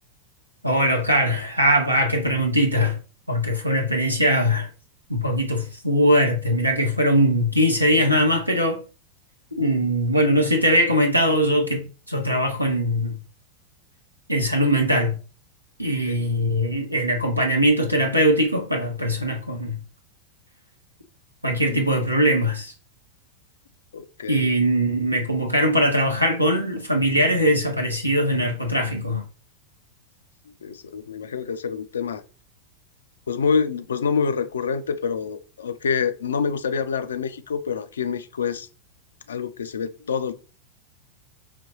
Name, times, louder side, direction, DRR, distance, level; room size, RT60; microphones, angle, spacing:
voice 1, 0.6-3.0 3.3-4.7 5.1-8.8 9.6-13.2 14.3-15.2 15.8-19.8 21.4-22.7 24.3-29.2, equal, 90° right, 0.6 m, -21 dB
voice 2, 23.9-24.5 30.5-32.2 33.3-38.7 39.3-40.3, left 6 dB, 65° left, 0.4 m, -27 dB
4.9 x 2.9 x 2.8 m
figure-of-eight pair, 90°, 0 cm